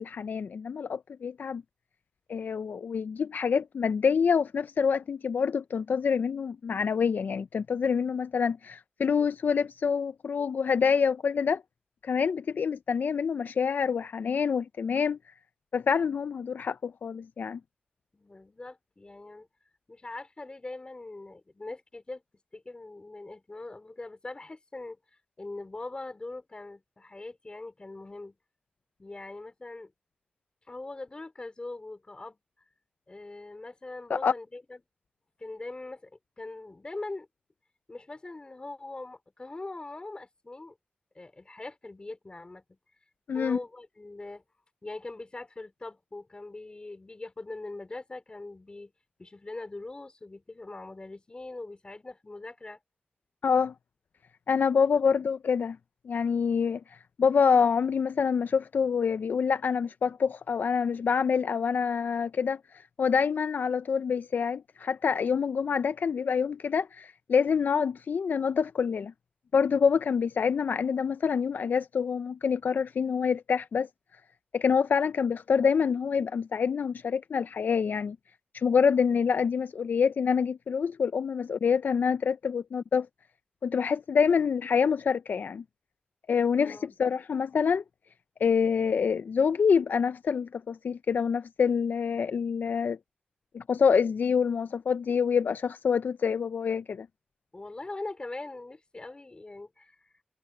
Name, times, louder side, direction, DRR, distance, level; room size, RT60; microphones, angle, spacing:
voice 1, 0.0-1.6 2.3-11.6 12.0-15.2 15.7-17.6 34.1-34.3 43.3-43.6 53.4-53.7 54.5-55.8 56.1-56.8 57.2-62.6 63.0-69.1 69.5-73.9 74.5-78.2 78.5-83.1 83.6-85.6 86.3-87.8 88.4-93.0 93.5-97.1, left 6 dB, 80° left, 0.4 m, -26 dB
voice 2, 18.1-19.5 19.9-22.2 22.5-25.0 25.4-28.4 29.0-29.9 30.7-32.4 33.1-34.8 35.4-37.3 37.9-40.8 41.1-42.8 43.3-44.4 44.8-48.9 49.2-52.8 54.7-55.0 86.6-87.0 97.5-100.2, left 2 dB, 30° left, 3.4 m, -42 dB
wide cardioid pair, 100°, 3 cm